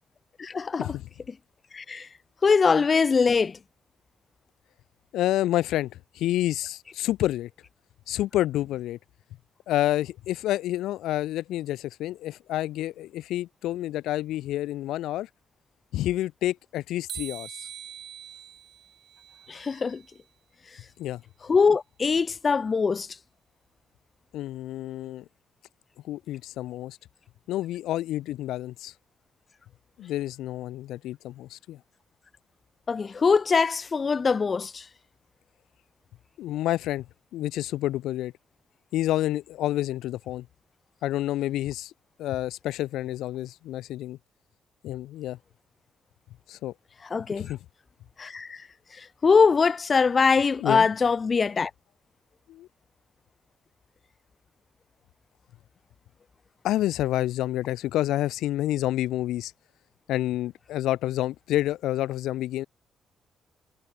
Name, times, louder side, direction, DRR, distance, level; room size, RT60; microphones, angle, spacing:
voice 1, 0.4-0.9 1.7-2.1 2.4-3.6 19.5-20.0 21.5-23.1 32.9-34.8 47.1-47.5 48.2-48.6 49.0-51.7, left 5 dB, 35° left, 0.7 m, -22 dB
voice 2, 5.1-7.5 8.1-9.0 9.7-15.3 15.9-17.5 21.0-21.2 24.3-25.2 26.0-27.0 27.5-28.9 30.0-31.8 36.4-37.1 37.3-38.3 38.9-40.5 41.0-41.9 42.2-44.2 44.8-45.4 46.5-46.7 47.3-47.6 50.6-50.9 52.5-52.7 56.6-59.5 60.1-62.6, left 14 dB, 85° left, 0.9 m, -29 dB
sound 1, 17.1-20.2, right 9 dB, 65° right, 4.4 m, -43 dB
cardioid pair, 90°, 0 cm